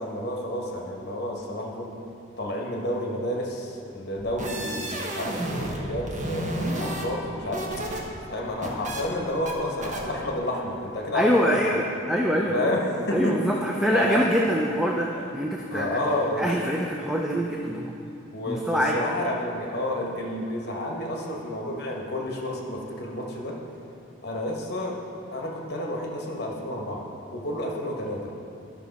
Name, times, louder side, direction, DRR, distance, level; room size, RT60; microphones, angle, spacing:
voice 1, 0.0-1.9 2.4-7.7 8.3-11.7 12.5-13.5 13.9-14.2 15.1-15.3 15.7-16.5 18.3-23.5 24.2-25.0 25.3-28.3, left 1 dB, 55° left, -1 dB, 1.2 m, -30 dB
sound 1, 4.2-5.8 6.1-8.0 8.3-9.0 9.5-9.6 9.8-10.0, right 1 dB, 40° right, 1.1 m, -31 dB
voice 2, 11.1-12.7 13.1-16.0 16.4-18.0 18.5-19.0, equal, 5° right, -1 dB, 0.4 m, -24 dB
12.0 x 5.8 x 4.1 m, 2.6 s
head